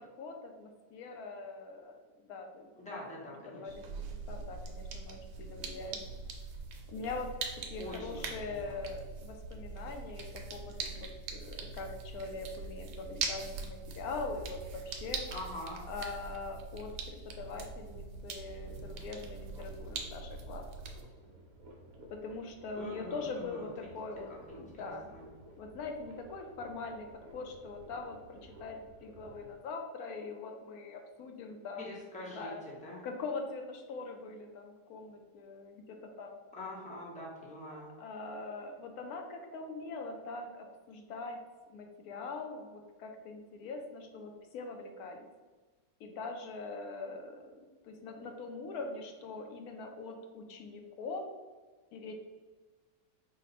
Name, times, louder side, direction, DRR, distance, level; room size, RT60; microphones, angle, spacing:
voice 1, 0.0-3.0 3.5-3.8 4.3-6.0 6.9-7.3 7.7-15.2 15.9-20.7 22.1-24.3 24.6-25.1 25.6-27.1 27.3-31.9 32.3-32.6 33.0-36.4 37.7-41.4 41.7-45.3 46.0-47.4 47.8-51.2 51.9-52.1, left 3 dB, 70° left, 4 dB, 1.0 m, -42 dB
voice 2, 2.8-3.7 7.8-8.8 15.3-15.8 22.7-23.9 24.5-25.3 31.8-33.0 36.5-37.9, left 1 dB, 5° left, -4 dB, 0.6 m, -44 dB
sound 1, 3.7-21.0, right 4 dB, 85° right, 1.3 m, -42 dB
sound 2, 18.6-29.6, right 1 dB, 65° right, 1.1 m, -55 dB
4.9 x 2.2 x 4.1 m, 1.3 s
omnidirectional pair, 1.9 m